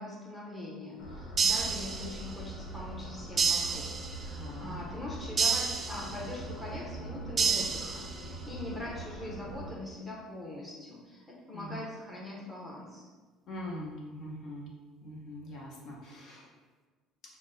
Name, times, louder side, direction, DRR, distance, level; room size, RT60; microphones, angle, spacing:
voice 1, 0.0-13.0, left 1 dB, 5° left, -6 dB, 0.8 m, -42 dB
sound 1, 1.0-9.7, right 1 dB, 85° left, 0.8 m, -42 dB
sound 2, 1.4-2.4 3.4-4.4 5.4-6.4 7.4-8.4, right 5 dB, 20° right, 0.3 m, -30 dB
voice 2, 4.4-4.8 11.5-11.8 13.5-14.7 15.0-16.4, left 1 dB, 45° left, -3 dB, 0.9 m, -42 dB
5.8 x 2.1 x 3.9 m, 1.4 s
cardioid pair, 150°, 0 cm